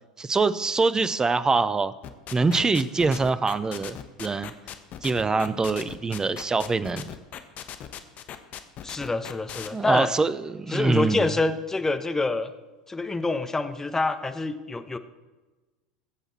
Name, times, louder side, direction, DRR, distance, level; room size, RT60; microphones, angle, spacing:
voice 1, 0.2-1.9 2.3-4.5 5.0-7.0 9.7-11.3, right 4 dB, 15° right, 15 dB, 0.7 m, -24 dB
sound 1, 2.0-9.7, left 10 dB, 40° left, 1.2 m, -38 dB
voice 2, 8.8-10.1 10.7-12.5 12.9-15.0, left 3 dB, 10° left, 9 dB, 1.0 m, -26 dB
22.0 x 8.0 x 4.4 m, 1.2 s
figure-of-eight pair, 80°, 4 cm